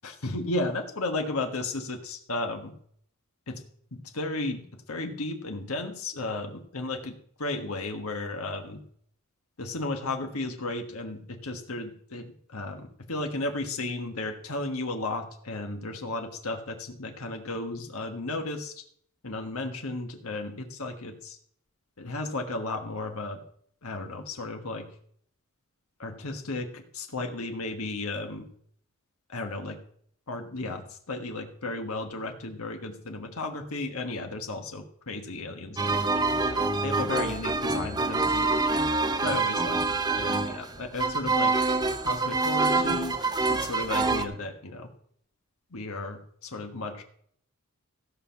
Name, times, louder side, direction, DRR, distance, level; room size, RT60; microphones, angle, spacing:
voice 1, 0.0-2.8 3.5-3.6 3.9-8.8 9.6-18.7 19.2-21.4 22.0-23.4 23.8-25.0 26.0-28.5 29.3-29.8 30.3-38.7 39.2-41.6 42.0-43.2 43.5-44.9 45.7-47.0, left 2 dB, 80° left, 4 dB, 1.4 m, -34 dB
sound 1, 35.8-44.2, right 3 dB, 20° right, 0.7 m, -26 dB
15.5 x 5.6 x 5.8 m, 0.63 s
head